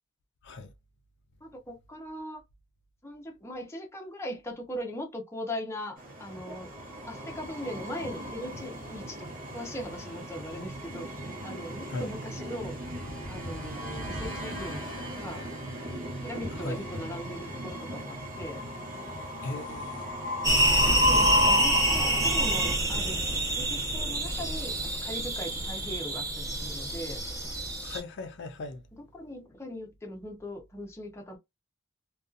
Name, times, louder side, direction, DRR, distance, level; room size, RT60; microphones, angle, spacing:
voice 1, 1.4-2.4 3.0-6.7 7.1-9.3 9.5-11.1 11.4-12.8 13.3-14.8 15.2-15.4 16.2-18.6 20.9-27.2 28.9-31.4, equal, 15° left, 0.6 m, -40 dB
Train, 6.0-22.8, equal, 40° right, 1.0 m, -34 dB
voice 2, 16.5-16.8 19.4-20.1 27.8-28.8, left 2 dB, 60° left, 0.5 m, -38 dB
sound 1, 20.4-28.0, right 1 dB, 15° right, 0.8 m, -27 dB
2.6 x 2.3 x 2.4 m
head